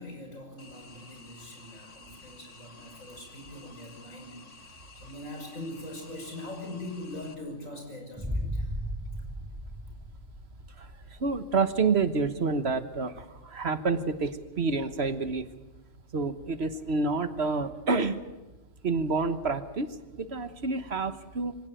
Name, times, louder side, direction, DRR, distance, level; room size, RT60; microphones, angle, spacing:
voice 1, 0.0-4.4 5.0-8.7, left 1 dB, 90° left, 2 dB, 6.4 m, -42 dB
sound 1, 0.6-7.3, left 4 dB, 70° left, 2.1 m, -52 dB
Boom, 8.2-11.1, equal, 5° right, 4.8 m, -35 dB
voice 2, 10.8-15.4 16.1-18.2 18.8-21.5, right 4 dB, 55° right, 11 dB, 1.5 m, -28 dB
25.5 x 17.0 x 9.1 m, 1.1 s
omnidirectional pair, 1.3 m